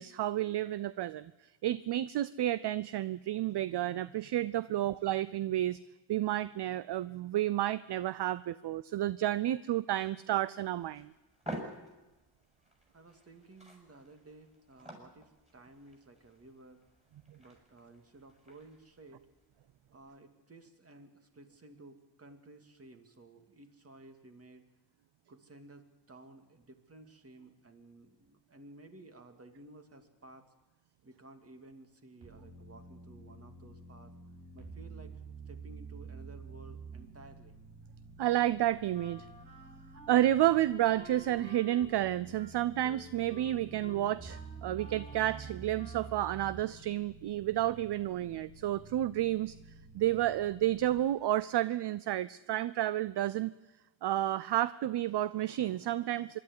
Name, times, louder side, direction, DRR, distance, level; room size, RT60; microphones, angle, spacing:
voice 1, 0.0-1.3 1.6-5.8 6.1-11.1 38.2-39.3 40.1-49.6 49.9-53.5 54.0-56.4, right 13 dB, 60° right, 17 dB, 0.6 m, -31 dB
sound 1, 10.7-20.2, equal, 15° right, 6.4 m, -50 dB
voice 2, 12.9-16.8 17.4-19.3 19.9-24.6 25.3-30.5 31.0-34.1 34.5-37.6, right 2 dB, 30° right, 6 dB, 2.4 m, -55 dB
sound 2, 32.2-41.4 41.8-51.0, right 4 dB, 75° right, 6.0 m, -50 dB
Wind instrument woodwind instrument, 38.9-40.6 40.9-46.3, equal, 15° left, 2.7 m, -53 dB
24.5 x 12.0 x 9.7 m, 1.1 s
cardioid pair, 100°, 46 cm